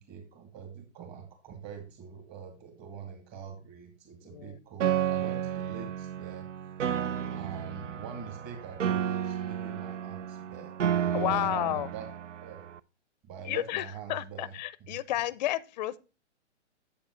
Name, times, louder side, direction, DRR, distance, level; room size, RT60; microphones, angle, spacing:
voice 1, 0.0-6.5 7.3-12.1 12.4-12.7 13.2-14.5 14.8-15.0, right 7 dB, 25° right, 2.4 m, -44 dB
Piano, 4.8-12.8, right 9 dB, 80° right, 0.6 m, -32 dB
voice 2, 6.9-7.4 11.1-11.9 13.5-16.0, left 14 dB, 40° left, 0.5 m, -32 dB
8.4 x 8.1 x 3.1 m
hypercardioid pair, 135°, 36 cm